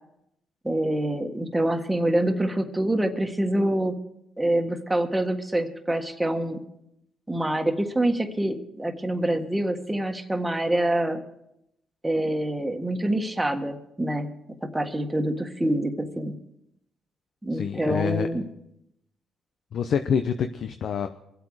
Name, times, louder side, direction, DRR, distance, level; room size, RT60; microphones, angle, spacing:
voice 1, 0.6-4.0 4.4-6.6 7.3-11.2 12.0-14.3 14.6-16.4 17.4-18.4, right 1 dB, 10° right, 4 dB, 1.6 m, -26 dB
voice 2, 17.5-18.3 19.7-21.1, left 7 dB, 65° left, 8 dB, 0.7 m, -26 dB
23.5 x 8.2 x 4.9 m, 0.80 s
cardioid pair, 90°, 0 cm